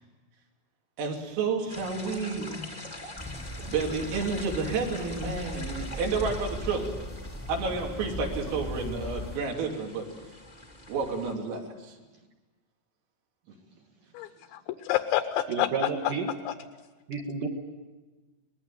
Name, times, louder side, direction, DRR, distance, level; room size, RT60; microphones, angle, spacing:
voice 1, 1.0-2.8 3.6-7.0 7.5-10.1 10.9-12.0 13.5-13.6, right 4 dB, 85° right, 0 dB, 5.8 m, -30 dB
sound 1, 1.7-11.3, left 2 dB, 40° left, 0.5 m, -44 dB
sound 2, 3.2-9.4, left 1 dB, 10° left, 0.8 m, -38 dB
voice 2, 14.1-16.1 16.5-16.6, left 13 dB, 75° left, 8 dB, 2.8 m, -29 dB
voice 3, 15.5-16.3 17.1-17.5, right 5 dB, 65° right, 3 dB, 2.2 m, -31 dB
24.0 x 20.5 x 9.1 m, 1.2 s
omnidirectional pair, 5.8 m